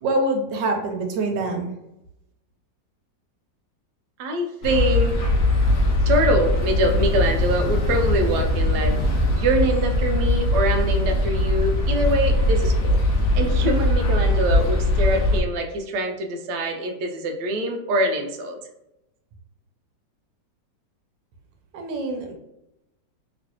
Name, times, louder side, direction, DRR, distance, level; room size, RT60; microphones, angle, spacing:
voice 1, 0.0-1.7 21.7-22.3, right 2 dB, 90° right, 3 dB, 1.4 m, -25 dB
voice 2, 4.2-5.2 6.1-9.0 9.3-13.0 13.3-18.6, right 1 dB, 70° right, 3 dB, 1.1 m, -24 dB
sound 1, 4.6-15.4, left 1 dB, 85° left, 0.6 m, -21 dB
3.0 x 3.0 x 2.9 m, 0.85 s
omnidirectional pair, 2.0 m